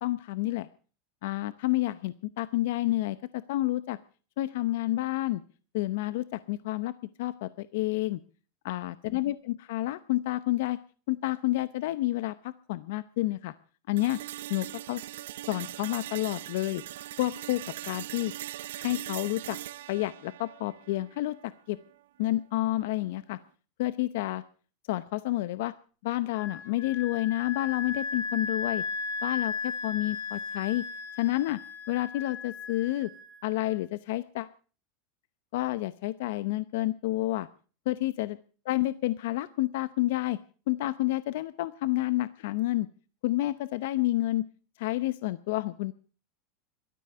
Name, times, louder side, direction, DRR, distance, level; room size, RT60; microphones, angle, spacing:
voice 1, 0.0-0.7 1.2-4.0 4.4-5.4 5.7-6.9 7.2-8.2 8.6-10.8 11.1-13.5 13.9-14.2 14.5-15.0 15.5-16.8 17.2-18.3 18.8-19.6 19.9-21.8 22.2-23.4 23.8-24.4 24.9-25.7 26.0-28.8 29.2-30.9 31.2-31.6 31.9-33.1 33.4-34.5 35.5-37.5 37.9-38.4 38.7-40.4 40.7-42.9 43.2-44.5 44.8-45.9, left 17 dB, 65° left, 15 dB, 0.7 m, -29 dB
sound 1, 14.0-22.0, right 14 dB, 85° right, 0.7 m, -41 dB
Wind instrument woodwind instrument, 26.3-33.8, left 4 dB, 85° left, 4.3 m, -36 dB
16.5 x 13.0 x 6.7 m, 0.40 s
supercardioid pair, 160°, 0 cm